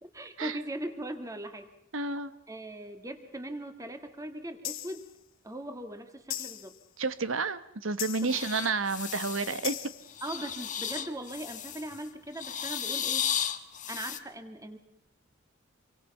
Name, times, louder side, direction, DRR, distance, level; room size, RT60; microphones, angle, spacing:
voice 1, 0.0-1.7 2.5-5.1 5.4-6.8 8.2-8.4 10.2-13.3 13.9-14.8, right 1 dB, 15° right, 7 dB, 2.1 m, -40 dB
voice 2, 1.9-2.3 7.0-9.8, right 4 dB, 75° right, 13 dB, 1.2 m, -30 dB
sound 1, 4.6-5.1 6.3-6.8 8.0-8.5 9.6-10.1, left 13 dB, 75° left, 1.2 m, -38 dB
sound 2, 8.3-9.7 10.1-12.0 12.3-14.2, left 9 dB, 40° left, 1.4 m, -34 dB
27.5 x 23.5 x 5.6 m, 0.75 s
head